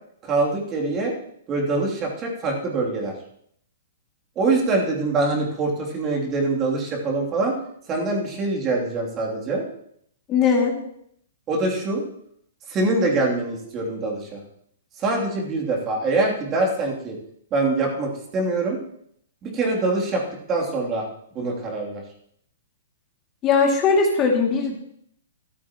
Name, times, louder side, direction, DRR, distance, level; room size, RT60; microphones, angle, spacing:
voice 1, 0.2-1.1 1.5-3.1 4.4-7.6 7.9-9.6 11.5-12.0 12.7-14.4 15.0-17.2 17.5-18.8 19.4-20.2 20.5-21.1 21.3-22.0, right 3 dB, 25° right, -1 dB, 3.0 m, -24 dB
voice 2, 10.3-10.7 23.4-24.7, left 5 dB, 30° left, 0 dB, 2.4 m, -19 dB
13.5 x 13.0 x 3.0 m, 0.68 s
figure-of-eight pair, 120°, 0 cm